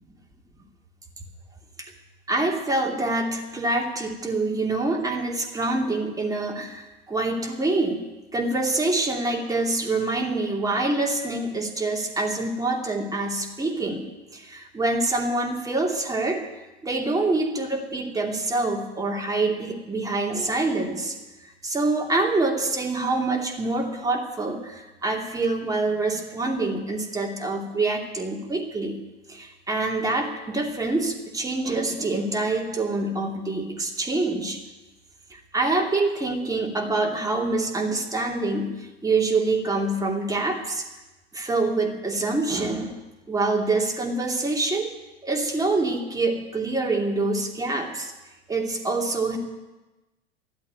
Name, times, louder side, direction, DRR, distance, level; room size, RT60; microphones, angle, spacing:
voice 1, 2.3-8.0 8.3-14.0 14.3-16.4 16.8-21.2 21.4-29.0 29.3-34.6 35.3-40.8 41.3-43.0 43.3-44.9 45.2-48.1 48.5-49.4, right 2 dB, 10° right, 1 dB, 2.7 m, -26 dB
13.0 x 11.5 x 9.4 m, 1.1 s
figure-of-eight pair, 85°, 33 cm